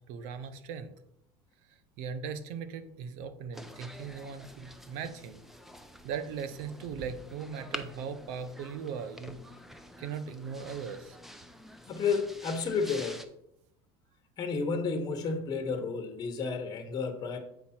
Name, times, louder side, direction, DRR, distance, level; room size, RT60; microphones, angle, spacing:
voice 1, 0.1-0.9 2.0-5.4 6.0-9.4 10.0-11.2, right 6 dB, 70° right, 11 dB, 0.9 m, -39 dB
sound 1, 3.5-13.3, equal, ahead, 0.7 m, -47 dB
voice 2, 11.9-13.2 14.4-17.4, left 5 dB, 30° left, 6 dB, 1.3 m, -31 dB
8.0 x 5.3 x 4.4 m, 0.76 s
supercardioid pair, 125°, 13 cm